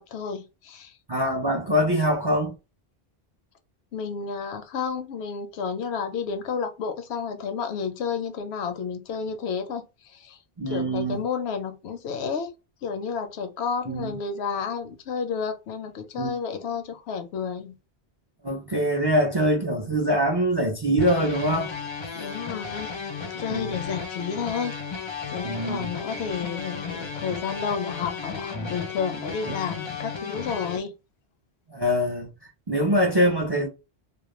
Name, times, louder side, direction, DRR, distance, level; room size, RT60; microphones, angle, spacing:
voice 1, 0.0-0.9 3.9-10.4 10.7-12.5 12.8-17.8 22.1-22.9 23.2-30.9, left 6 dB, 80° left, 0.8 m, -31 dB
voice 2, 1.1-2.5 10.6-11.2 13.9-14.2 16.2-16.4 18.4-21.7 23.5-23.8 25.4-25.9 31.7-32.3 32.7-33.7, equal, 40° right, 0.4 m, -23 dB
sound 1, 21.0-30.8, left 5 dB, 40° left, 0.4 m, -34 dB
2.3 x 2.0 x 3.0 m
omnidirectional pair, 1.1 m